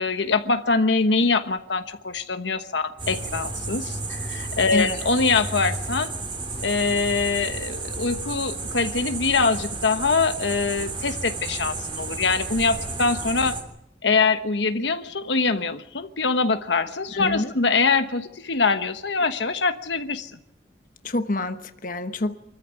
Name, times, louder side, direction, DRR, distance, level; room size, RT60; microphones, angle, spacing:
voice 1, 0.0-6.1 6.6-13.5 14.0-20.3, left 4 dB, 75° left, 9 dB, 1.2 m, -23 dB
sound 1, 3.0-13.6, right 3 dB, 30° right, 3.5 m, -32 dB
voice 2, 4.7-5.0 17.1-17.5 21.0-22.3, left 2 dB, 50° left, 8 dB, 1.1 m, -27 dB
25.5 x 14.0 x 9.1 m, 0.82 s
head